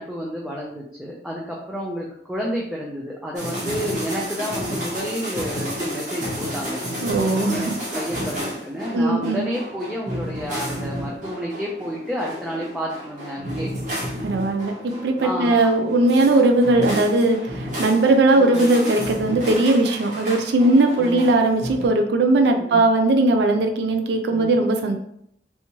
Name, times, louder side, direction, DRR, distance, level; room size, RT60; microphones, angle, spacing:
voice 1, 0.0-6.8 7.5-13.7 15.2-15.5 18.4-18.6 21.0-21.3 22.6-22.8 24.3-24.6, equal, 5° right, -4 dB, 0.4 m, -30 dB
sound 1, 3.3-21.9, equal, 45° right, 1.1 m, -31 dB
voice 2, 7.0-7.7 8.9-9.4 14.2-25.0, right 2 dB, 70° right, 4 dB, 0.4 m, -19 dB
3.4 x 2.9 x 2.9 m, 0.72 s
head